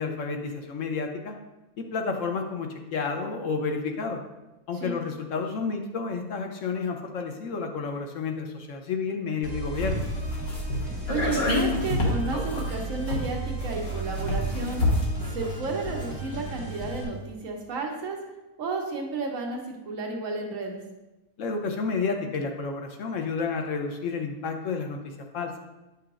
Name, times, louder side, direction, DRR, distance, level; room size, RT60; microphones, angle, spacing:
voice 1, 0.0-1.3 1.8-4.2 4.7-10.1 21.4-25.5, left 4 dB, 65° left, 4 dB, 0.9 m, -30 dB
sound 1, 9.4-17.0, right 2 dB, 15° right, 2.2 m, -34 dB
sound 2, 9.7-16.5 16.7-16.8, left 2 dB, 45° left, 1.4 m, -29 dB
voice 2, 11.1-14.8 15.3-18.2 18.6-20.8, right 3 dB, 65° right, 0 dB, 1.3 m, -32 dB
8.3 x 5.8 x 2.4 m, 1.0 s
omnidirectional pair, 1.5 m